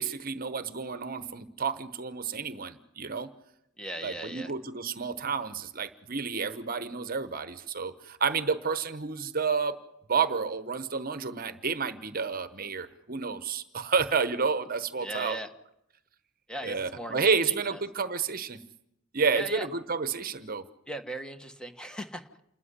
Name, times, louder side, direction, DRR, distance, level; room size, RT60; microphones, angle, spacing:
voice 1, 0.0-3.3 4.0-9.8 10.1-15.4 16.6-18.6 19.1-20.6, right 5 dB, 45° right, 12 dB, 1.0 m, -30 dB
voice 2, 3.8-4.5 15.0-15.5 16.5-17.8 19.3-19.7 20.9-22.3, right 1 dB, 5° left, 7 dB, 1.4 m, -38 dB
28.0 x 13.5 x 10.0 m, 0.82 s
head